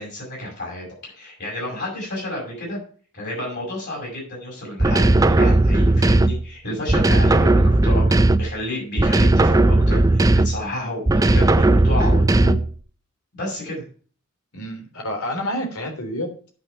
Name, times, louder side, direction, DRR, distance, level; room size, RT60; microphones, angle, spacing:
voice 1, 0.0-2.8 3.1-8.0 8.4-12.6 13.3-13.8, left 1 dB, 50° left, -2 dB, 5.8 m, -31 dB
sound 1, 4.8-6.5 6.9-8.6 9.0-10.7 11.1-12.8, right 2 dB, 15° right, 0.4 m, -16 dB
voice 2, 14.5-16.5, equal, 80° left, 4 dB, 3.4 m, -29 dB
10.0 x 6.2 x 5.8 m, 0.41 s
head